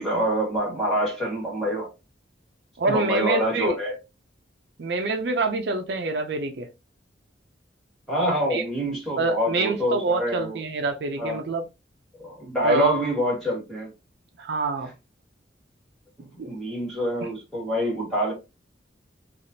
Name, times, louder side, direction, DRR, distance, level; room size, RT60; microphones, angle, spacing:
voice 1, 0.0-1.9 2.9-3.9 8.1-10.6 11.2-11.4 12.2-13.9 16.2-18.3, equal, ahead, 1.6 m, -26 dB
voice 2, 2.8-3.8 4.8-6.7 8.5-8.6 9.2-11.6 12.6-13.0 14.4-14.9 16.4-16.5, right 3 dB, 60° right, 0.5 m, -26 dB
3.3 x 2.4 x 2.7 m
head